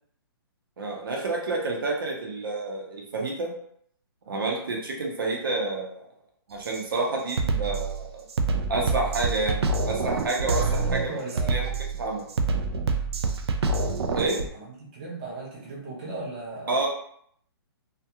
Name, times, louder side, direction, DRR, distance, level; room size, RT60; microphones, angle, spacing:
voice 1, 0.8-3.5 4.3-6.1 6.5-8.2 8.7-10.6 10.9-11.2 11.5-11.7 12.0-12.2 14.1-14.4 16.7-16.9, right 2 dB, 60° right, -1 dB, 0.7 m, -29 dB
Drum kit, 6.6-6.8 7.3-14.5, right 4 dB, 85° right, 0.4 m, -27 dB
voice 2, 10.5-11.7 14.5-16.9, right 3 dB, 20° right, -5 dB, 0.5 m, -37 dB
2.3 x 2.3 x 2.8 m, 0.67 s
hypercardioid pair, 175°, 13 cm